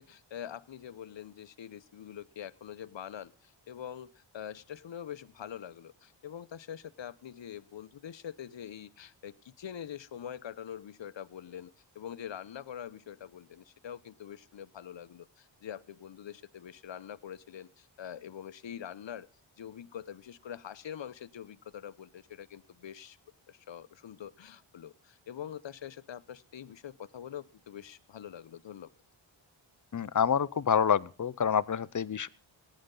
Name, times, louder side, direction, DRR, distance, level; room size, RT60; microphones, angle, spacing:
voice 1, 0.0-19.3 19.6-23.2 23.5-28.9, left 9 dB, 65° left, 15 dB, 0.9 m, -44 dB
voice 2, 29.9-32.3, left 7 dB, 40° left, 18 dB, 0.7 m, -27 dB
16.5 x 10.5 x 3.8 m, 0.38 s
cardioid pair, 60°, 48 cm